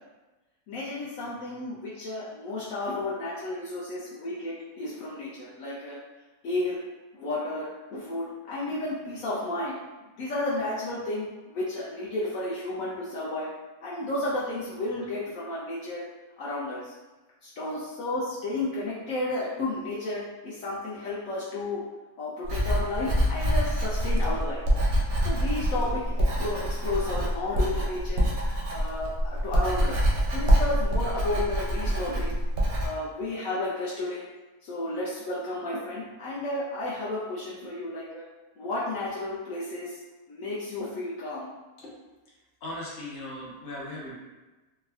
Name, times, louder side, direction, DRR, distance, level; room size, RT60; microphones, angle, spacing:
voice 1, 0.7-6.0 6.4-6.8 7.1-9.8 10.2-13.5 13.8-16.0 16.4-16.8 17.4-21.8 22.2-24.6 25.2-28.2 28.7-29.1 29.4-32.3 32.8-34.2 34.6-38.2 38.6-39.9 40.3-41.5, left 2 dB, 70° left, -7 dB, 1.0 m, -32 dB
Writing, 22.4-32.9, equal, 60° right, 0.6 m, -25 dB
voice 2, 42.6-44.1, left 1 dB, 50° left, -6 dB, 0.9 m, -38 dB
3.4 x 2.1 x 2.3 m, 1.1 s
omnidirectional pair, 1.6 m